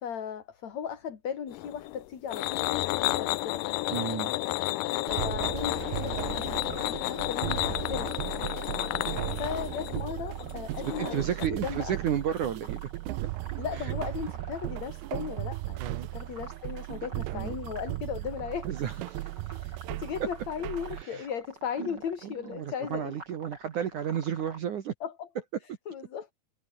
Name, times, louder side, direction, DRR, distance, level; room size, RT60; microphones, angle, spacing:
voice 1, 0.0-3.7 5.1-8.1 9.4-11.4 11.6-12.0 13.6-18.7 19.6-23.1 25.0-25.3 25.9-26.3, left 8 dB, 45° left, 3.6 m, -37 dB
sound 1, 1.5-11.5, left 18 dB, 85° left, 1.9 m, -32 dB
voice 2, 3.9-4.3 9.2-9.4 10.8-13.1 13.7-13.9 15.8-16.1 17.3-17.5 18.6-19.7 20.9-21.3 21.8-24.9, right 9 dB, 60° right, 2.8 m, -33 dB
sound 2, 5.1-21.0, right 20 dB, 85° right, 2.7 m, -36 dB
sound 3, 5.7-24.6, right 2 dB, 25° right, 7.1 m, -49 dB
omnidirectional pair, 4.6 m